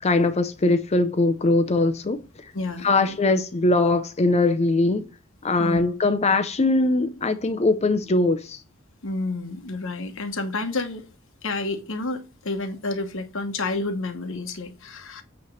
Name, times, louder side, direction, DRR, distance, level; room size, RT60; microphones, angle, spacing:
voice 1, 0.0-2.2 2.8-5.1 5.4-8.6, left 2 dB, 30° left, 0.5 m, -21 dB
voice 2, 2.5-3.2 5.6-5.8 9.0-11.1 11.4-15.2, left 2 dB, 65° left, 1.2 m, -30 dB
8.4 x 3.1 x 6.2 m
head